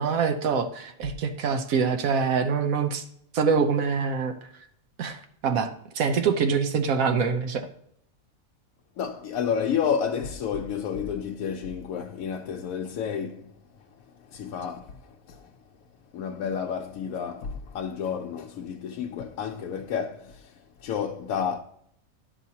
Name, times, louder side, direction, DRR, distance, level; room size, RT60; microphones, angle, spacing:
voice 1, 0.0-3.0 3.3-4.3 5.0-7.7, right 5 dB, 85° right, 1.2 m, -25 dB
voice 2, 9.0-13.5 14.3-15.5 16.1-20.5 20.8-21.6, left 7 dB, 85° left, 1.0 m, -30 dB
10.5 x 6.2 x 2.8 m
omnidirectional pair, 1.4 m